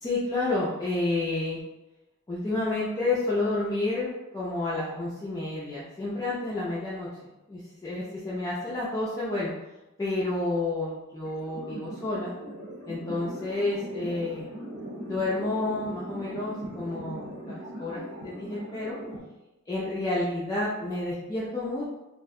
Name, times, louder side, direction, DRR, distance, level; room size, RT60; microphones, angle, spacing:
voice 1, 0.0-1.6 2.3-7.1 7.5-9.5 10.0-12.3 12.9-14.5 15.0-18.9 19.7-21.9, left 2 dB, 15° left, -8 dB, 0.3 m, -30 dB
sound 1, 11.2-19.2, right 1 dB, 55° right, 0.9 m, -40 dB
2.3 x 2.1 x 2.6 m, 1.0 s
head